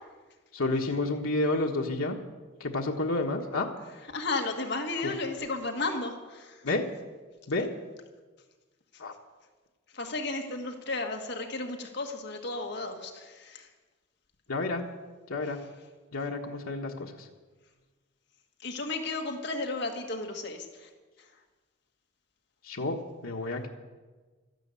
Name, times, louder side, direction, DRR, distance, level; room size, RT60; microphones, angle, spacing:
voice 1, 0.5-2.2 2.6-3.7 5.0-5.1 6.6-6.9 7.5-7.7 9.0-9.1 14.5-14.8 15.3-15.6 16.1-17.3 22.6-23.7, left 2 dB, 80° left, 1 dB, 1.3 m, -30 dB
voice 2, 4.1-6.6 9.9-13.7 18.6-20.9, left 3 dB, 55° left, 4 dB, 1.7 m, -33 dB
13.0 x 12.0 x 8.3 m, 1.3 s
head